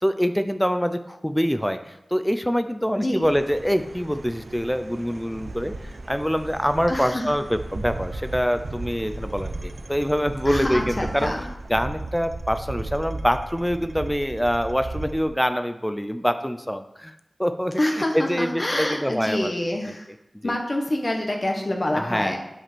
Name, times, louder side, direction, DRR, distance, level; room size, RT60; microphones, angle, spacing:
voice 1, 0.0-11.3 11.7-17.1 17.4-17.8 18.1-19.5 19.8-19.9 20.4-20.5 21.9-22.4, equal, 5° left, 9 dB, 0.6 m, -25 dB
sound 1, 3.2-15.2, right 2 dB, 70° right, 0.8 m, -35 dB
voice 2, 6.9-7.2 10.4-11.4 17.8-20.1 20.4-22.4, left 1 dB, 40° left, 2 dB, 1.4 m, -26 dB
9.0 x 5.2 x 6.3 m, 0.86 s
wide cardioid pair, 55°, 0 cm